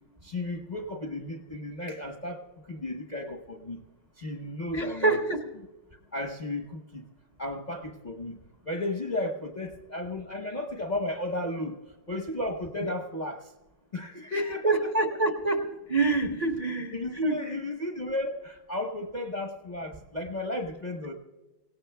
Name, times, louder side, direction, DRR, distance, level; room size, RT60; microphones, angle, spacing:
voice 1, 0.2-3.8 4.2-5.2 6.1-7.0 7.4-8.4 8.6-13.5 13.9-14.9 16.9-21.1, left 1 dB, 40° left, 3 dB, 0.6 m, -34 dB
voice 2, 4.7-5.4 14.3-17.0 17.2-17.5, right 3 dB, 45° right, 3 dB, 0.5 m, -26 dB
25.0 x 17.5 x 2.2 m, 1.1 s
omnidirectional pair, 2.1 m